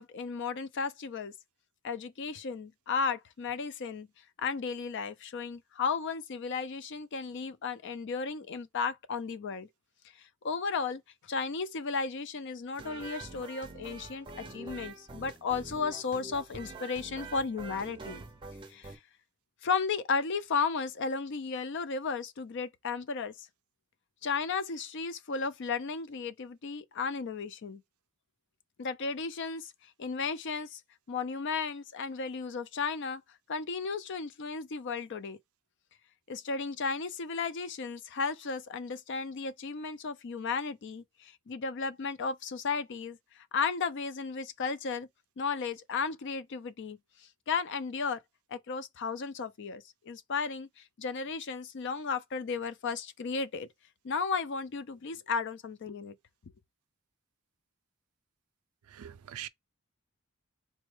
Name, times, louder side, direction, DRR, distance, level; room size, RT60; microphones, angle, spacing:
voice 1, 0.0-1.3 1.8-4.1 4.4-9.7 10.4-18.2 18.7-19.0 19.6-23.5 24.2-27.8 28.8-29.7 30.0-30.8 31.1-33.2 33.5-35.4 36.3-45.1 45.4-47.0 47.5-48.2 48.5-53.7 54.0-56.1, left 5 dB, 55° left, 0.4 m, -34 dB
sound 1, 12.7-19.0, right 3 dB, 25° right, 0.6 m, -45 dB
voice 2, 58.9-59.5, right 11 dB, 85° right, 0.4 m, -42 dB
4.3 x 2.2 x 3.1 m
head